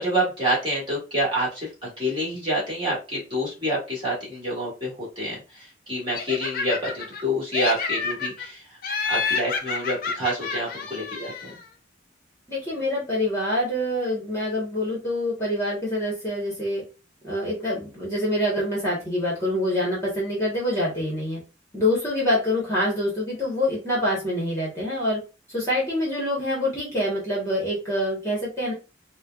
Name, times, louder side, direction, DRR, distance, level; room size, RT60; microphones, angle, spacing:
voice 1, 0.0-8.8 9.1-11.6, equal, 25° right, -6 dB, 1.7 m, -27 dB
Laughter, 6.1-7.2 7.5-8.5 8.8-11.6, left 4 dB, 50° left, 0.5 m, -29 dB
voice 2, 12.5-16.8 17.2-21.4 21.7-25.2 25.5-28.7, left 1 dB, 15° left, -5 dB, 1.1 m, -26 dB
4.3 x 2.2 x 2.3 m, 0.31 s
head